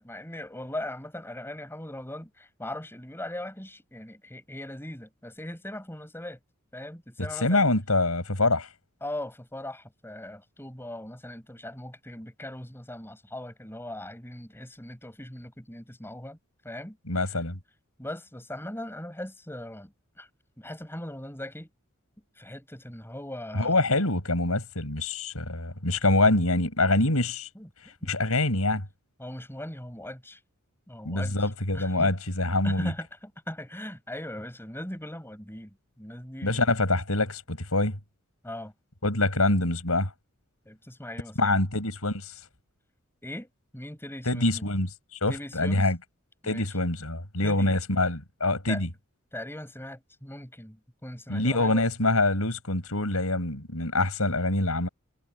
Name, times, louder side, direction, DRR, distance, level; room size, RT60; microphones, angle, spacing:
voice 1, 0.0-6.4 6.7-7.7 9.0-16.4 16.6-17.4 18.0-20.3 20.6-21.7 22.4-23.9 27.6-27.7 28.0-28.1 29.2-30.4 30.9-32.1 32.6-36.7 38.4-38.7 40.7-41.6 43.2-43.5 43.7-44.7 45.3-45.9 46.4-46.7 47.4-47.8 48.7-48.8 49.3-51.9, left 1 dB, 10° left, 7.0 m, -39 dB
voice 2, 7.4-8.7 17.1-17.6 23.5-27.5 28.0-28.8 31.0-32.9 36.4-38.0 39.0-40.1 41.4-42.3 44.3-46.0 46.4-48.9 51.3-54.9, left 2 dB, 80° left, 6.0 m, -25 dB
head